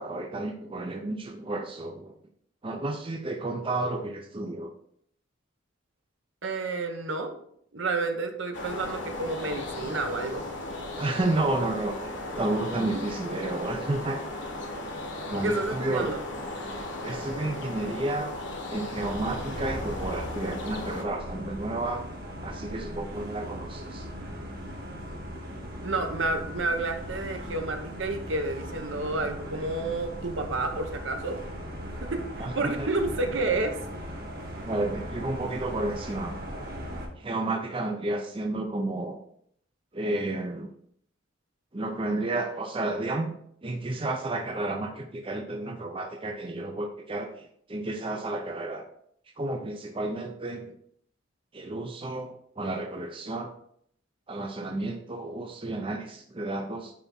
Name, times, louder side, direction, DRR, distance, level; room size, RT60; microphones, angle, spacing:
voice 1, 0.0-2.1 2.6-4.7 11.0-12.0 12.3-14.2 15.3-16.1 17.0-18.3 18.7-22.1 22.4-24.1 32.4-32.9 34.7-36.4 37.2-39.2 39.9-40.7 41.7-43.3 43.6-48.8 49.4-50.7 51.5-53.5 54.3-56.9, right 2 dB, 25° right, 3 dB, 0.6 m, -31 dB
voice 2, 6.4-7.3 7.7-10.4 12.9-13.0 15.4-16.2 25.8-31.4 32.0-34.0, right 3 dB, 65° right, 5 dB, 1.0 m, -30 dB
sound 1, 8.5-21.0, left 2 dB, 60° left, 1.2 m, -36 dB
sound 2, 18.9-37.1, equal, 50° right, 1.5 m, -38 dB
9.2 x 3.5 x 4.2 m, 0.65 s
head